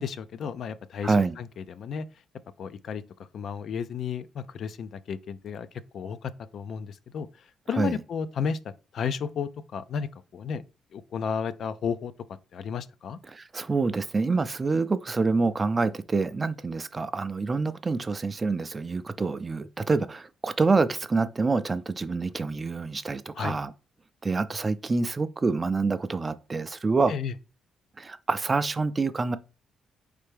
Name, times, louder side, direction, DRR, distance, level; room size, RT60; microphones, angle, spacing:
voice 1, 0.0-2.1 2.6-3.0 3.3-5.7 5.9-7.3 7.7-10.6 10.9-12.1 12.5-13.2 23.3-23.5 27.1-27.3, left 6 dB, 65° left, 0.3 m, -33 dB
voice 2, 1.0-1.4 7.8-8.0 13.3-23.7 24.2-27.1 28.0-29.4, right 3 dB, 30° right, 0.4 m, -26 dB
4.2 x 3.3 x 3.3 m
cardioid pair, 90°, 0 cm